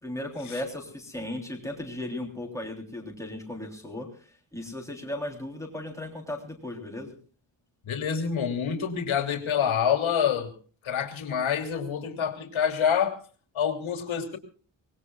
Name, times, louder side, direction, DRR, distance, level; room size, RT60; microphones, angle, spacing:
voice 1, 0.0-4.2 4.5-7.1, left 1 dB, 5° left, 1 dB, 3.5 m, -36 dB
voice 2, 7.8-10.5 10.8-13.2 13.5-14.4, left 8 dB, 90° left, 4 dB, 3.2 m, -27 dB
24.5 x 20.0 x 2.4 m, 0.40 s
wide cardioid pair, 175°, 46 cm